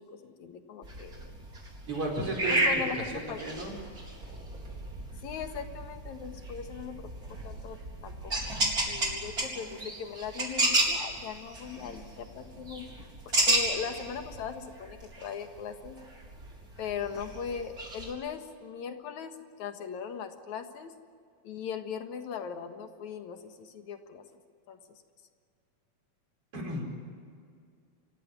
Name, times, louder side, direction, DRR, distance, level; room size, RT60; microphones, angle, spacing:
voice 1, 0.0-1.3 2.5-3.4 5.2-7.1 7.4-7.8 8.0-8.5 8.9-12.9 13.3-16.0 16.8-20.9 21.4-24.2 24.7-25.0, left 7 dB, 75° left, 7 dB, 2.9 m, -39 dB
sound 1, 0.8-18.1, right 1 dB, 30° right, 4.6 m, -33 dB
voice 2, 1.9-2.8 3.1-3.8 26.5-26.9, right 1 dB, 50° right, 1 dB, 5.8 m, -33 dB
27.5 x 16.0 x 9.6 m, 2.3 s
omnidirectional pair, 3.4 m